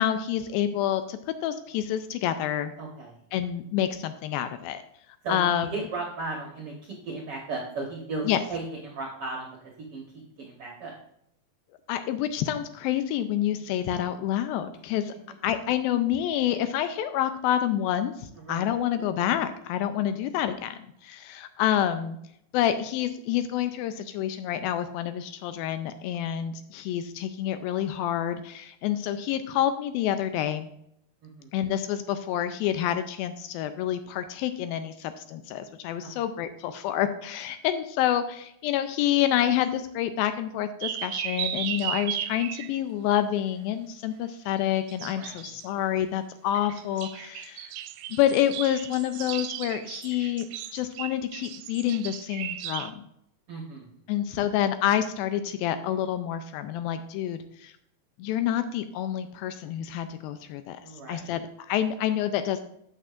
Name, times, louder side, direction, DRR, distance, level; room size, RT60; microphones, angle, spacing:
voice 1, 0.0-2.7 3.3-4.8 5.3-5.7 8.3-8.4 11.9-15.1 15.4-22.2 22.5-30.7 31.5-47.7 48.1-50.5 50.7-53.0 54.1-57.7 58.2-60.8 61.1-62.6, left 11 dB, 80° left, 10 dB, 2.2 m, -28 dB
voice 2, 2.8-3.2 5.2-11.0 13.6-13.8 18.3-19.0 31.2-31.5 36.0-36.1 45.1-45.6 53.5-54.0 60.8-61.3, right 3 dB, 65° right, -1 dB, 1.4 m, -36 dB
sound 1, 40.8-42.7 44.6-45.7 46.5-52.9, right 12 dB, 80° right, 2.2 m, -35 dB
12.0 x 8.1 x 2.5 m, 0.74 s
omnidirectional pair, 4.4 m